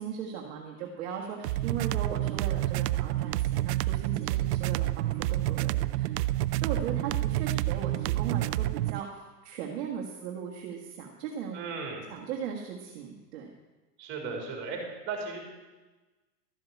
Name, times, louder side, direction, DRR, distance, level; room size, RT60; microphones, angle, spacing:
voice 1, 0.0-6.1 6.6-11.6 12.1-13.5, right 7 dB, 40° right, -1 dB, 1.6 m, -38 dB
sound 1, 1.4-9.0, right 15 dB, 75° right, 0.6 m, -29 dB
voice 2, 11.5-12.0 14.0-14.8 15.1-15.5, right 4 dB, 20° right, 1 dB, 3.7 m, -36 dB
12.5 x 7.7 x 8.4 m, 1.2 s
supercardioid pair, 160°, 49 cm